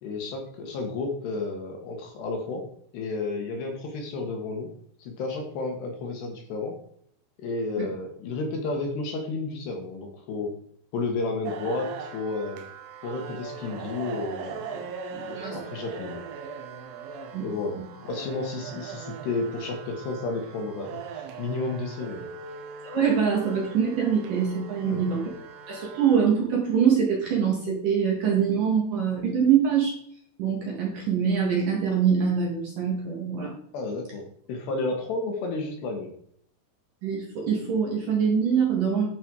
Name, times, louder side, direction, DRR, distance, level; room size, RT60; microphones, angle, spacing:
voice 1, 0.0-2.7 2.9-4.7 5.0-6.8 7.4-10.5 10.9-12.6 13.0-16.2 17.4-17.8 18.0-22.3 24.8-25.0 33.7-34.2 34.5-36.1, left 3 dB, 65° left, 2 dB, 3.1 m, -32 dB
sound 1, 11.4-26.3, right 5 dB, 85° right, 3.7 m, -40 dB
voice 2, 22.8-25.2 25.7-30.0 30.4-33.5 37.0-39.1, right 7 dB, 55° right, -2 dB, 2.7 m, -24 dB
12.0 x 6.1 x 4.7 m, 0.66 s
omnidirectional pair, 5.9 m